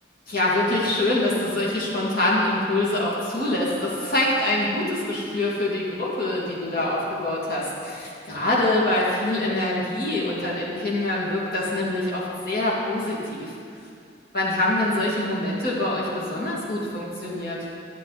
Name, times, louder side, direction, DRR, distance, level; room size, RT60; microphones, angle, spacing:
voice 1, 0.3-13.5 14.3-17.6, left 1 dB, 55° left, -6 dB, 2.6 m, -25 dB
12.5 x 8.0 x 4.2 m, 2.4 s
head